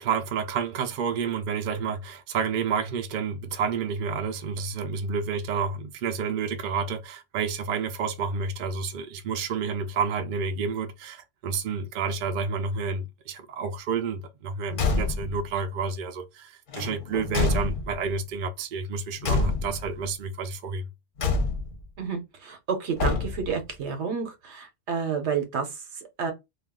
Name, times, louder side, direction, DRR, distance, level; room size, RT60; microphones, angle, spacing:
voice 1, 0.0-20.9, right 5 dB, 60° right, 0.6 m, -30 dB
Car / Truck / Slam, 14.7-15.4 16.7-18.1 19.2-20.0 21.2-21.9 23.0-23.6, left 3 dB, 55° left, 0.8 m, -27 dB
voice 2, 22.0-26.3, right 6 dB, 80° right, 1.1 m, -30 dB
2.3 x 2.3 x 3.5 m
omnidirectional pair, 1.1 m